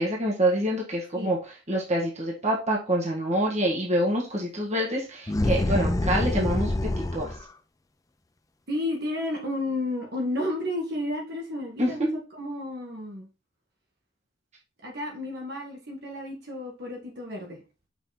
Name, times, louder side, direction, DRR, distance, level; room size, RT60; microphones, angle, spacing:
voice 1, 0.0-7.3 11.8-12.2, right 1 dB, 35° right, -3 dB, 1.8 m, -26 dB
sound 1, 5.3-7.5, left 1 dB, 15° left, 0.4 m, -26 dB
voice 2, 8.7-12.0 12.4-13.3 14.8-17.6, left 1 dB, 55° right, 0 dB, 1.8 m, -32 dB
6.1 x 4.2 x 4.2 m, 0.31 s
head